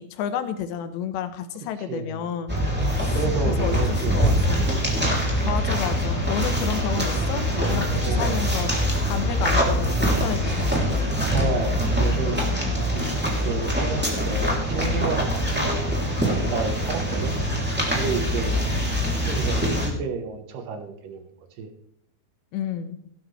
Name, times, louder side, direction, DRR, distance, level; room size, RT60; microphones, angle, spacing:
voice 1, 0.0-2.6 3.0-3.2 3.4-4.7 5.4-8.7 9.1-10.9 22.5-23.0, left 9 dB, 85° left, 9 dB, 3.2 m, -31 dB
voice 2, 1.9-2.3 3.0-4.8 5.3-5.5 8.0-8.6 11.3-12.6 12.9-13.2 13.4-15.9 16.2-17.3 17.9-18.6 19.2-21.3 21.6-21.7, right 5 dB, 65° right, 6 dB, 2.4 m, -31 dB
sound 1, 2.5-19.9, equal, 5° right, 1.8 m, -24 dB
17.0 x 12.0 x 3.3 m, 0.68 s
omnidirectional pair, 5.0 m